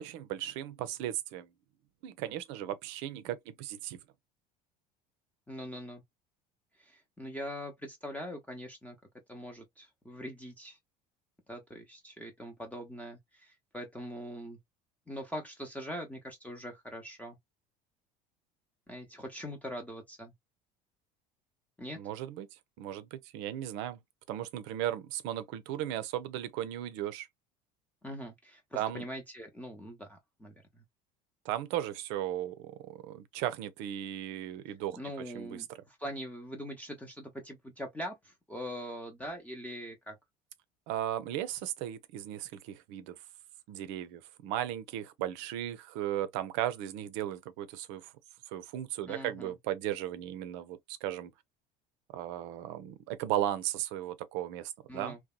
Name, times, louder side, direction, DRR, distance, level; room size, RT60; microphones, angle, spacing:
voice 1, 0.0-1.5 2.0-4.0 22.0-22.5 22.8-24.0 24.3-27.3 28.8-29.0 31.4-35.0 35.3-35.6 40.9-43.1 43.7-48.1 48.5-51.3 52.1-55.2, right 12 dB, 60° right, 0.6 m, -36 dB
voice 2, 5.5-6.0 6.8-9.0 9.3-10.8 11.5-14.6 15.1-17.4 18.9-20.3 21.8-22.0 28.0-30.8 35.0-40.2 49.1-49.5 54.9-55.2, equal, 5° left, 0.7 m, -42 dB
2.8 x 2.1 x 2.2 m
hypercardioid pair, 70°, 21 cm